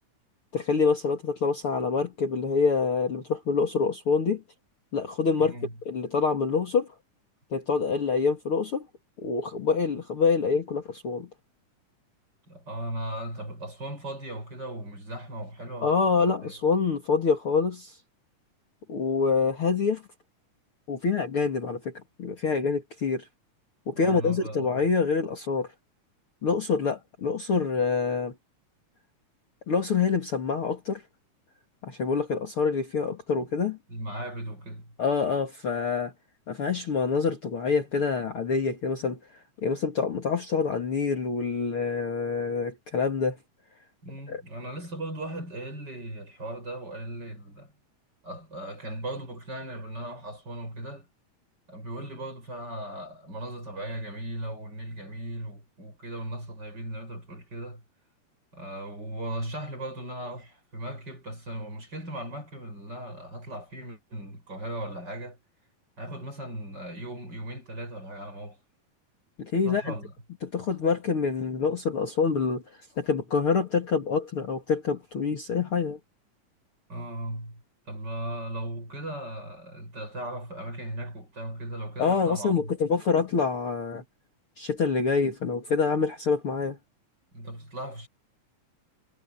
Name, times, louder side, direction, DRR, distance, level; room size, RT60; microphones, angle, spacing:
voice 1, 0.5-4.4 4.9-5.5 5.9-6.9 7.5-8.9 9.2-11.3 15.8-17.9 18.9-20.0 20.9-21.9 22.2-23.3 23.9-25.7 26.4-28.3 29.7-31.0 31.8-33.8 35.0-36.1 36.5-39.2 39.6-43.4 44.3-44.4 69.4-69.9 70.4-72.6 73.0-76.0 82.0-84.0 84.6-86.8, left 5 dB, 45° left, 2.8 m, -26 dB
voice 2, 5.3-5.8 12.5-16.5 23.9-24.9 33.3-33.5 33.9-34.9 44.0-47.7 48.2-51.1 51.7-57.8 58.5-65.4 66.0-68.6 69.6-70.1 76.9-77.6 77.9-82.7 87.3-88.1, right 1 dB, 30° right, 8.6 m, -37 dB
omnidirectional pair, 3.7 m